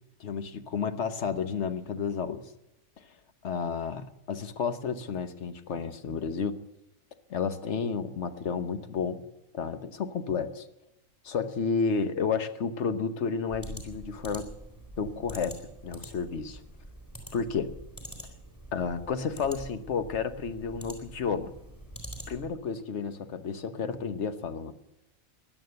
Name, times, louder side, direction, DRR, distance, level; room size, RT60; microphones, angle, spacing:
voice 1, 0.2-2.5 3.4-6.6 7.3-9.2 9.5-10.7 11.2-14.5 15.0-16.6 17.3-17.7 18.7-21.5 22.3-24.7, left 5 dB, 60° left, 10 dB, 1.3 m, -31 dB
sound 1, 13.5-22.6, right 1 dB, 15° left, 4.1 m, -45 dB
16.5 x 11.0 x 7.8 m, 0.91 s
omnidirectional pair, 1.4 m